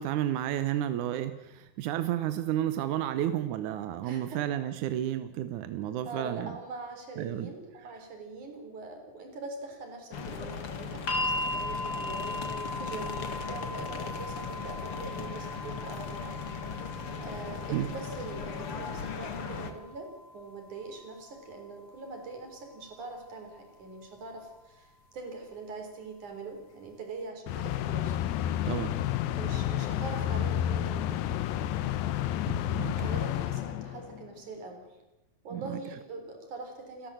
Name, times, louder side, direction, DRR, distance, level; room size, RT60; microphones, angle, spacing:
voice 1, 0.0-6.5 7.2-7.5 17.7-17.9 28.7-28.9 32.5-33.1 35.5-35.8, right 12 dB, 70° right, 11 dB, 2.0 m, -32 dB
voice 2, 4.0-4.4 6.1-16.4 17.2-28.2 29.4-31.3 33.0-34.9 35.4-37.1, right 3 dB, 55° right, 3 dB, 5.3 m, -43 dB
plasa catalunya entrada corte ingles, 10.1-19.7, left 5 dB, 50° left, 1.9 m, -38 dB
sound 1, 11.1-23.2 24.2-24.3, left 1 dB, 30° left, 2.2 m, -39 dB
sound 2, 27.5-34.3, left 11 dB, 75° left, 2.5 m, -30 dB
29.0 x 13.0 x 7.7 m, 0.94 s
omnidirectional pair, 4.3 m